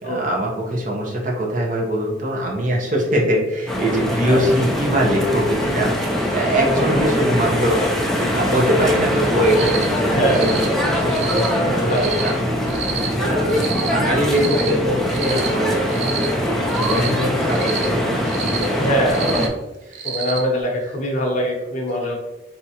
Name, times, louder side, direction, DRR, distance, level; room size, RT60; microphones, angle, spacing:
voice 1, 0.0-6.0 6.3-8.0 8.3-12.4 12.8-16.2 16.8-19.1 19.9-20.2, equal, 45° right, -2 dB, 0.8 m, -22 dB
sound 1, 3.7-19.5, equal, ahead, 0.5 m, -22 dB
Cricket, 9.5-9.8 10.3-10.6 11.1-11.5 11.9-12.3 12.7-13.1 13.5-13.9 14.3-14.7 15.1-15.5 15.9-16.3 16.7-17.1 17.5-17.8 18.3-18.6 19.1-19.4 19.9-20.4, right 8 dB, 85° right, 0.6 m, -29 dB
voice 2, 10.1-10.6 11.9-12.1 13.2-13.5 18.8-19.5 20.0-22.1, equal, 45° left, 0 dB, 0.8 m, -22 dB
3.5 x 2.8 x 2.8 m, 1.0 s
head